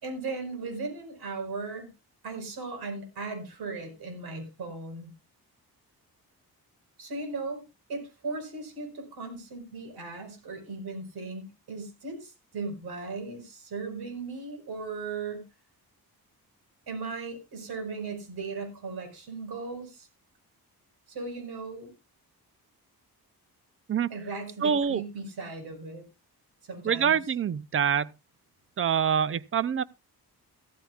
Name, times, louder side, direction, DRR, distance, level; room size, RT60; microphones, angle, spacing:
voice 1, 0.0-1.9 2.2-5.1 7.0-7.6 7.9-15.5 16.9-20.1 21.1-21.9 24.1-26.0 26.6-27.2, right 3 dB, 80° right, 5.0 m, -37 dB
voice 2, 24.6-25.0 26.8-28.1 28.8-29.8, right 7 dB, 35° right, 0.5 m, -25 dB
15.0 x 13.5 x 2.4 m
wide cardioid pair, 135°, 37 cm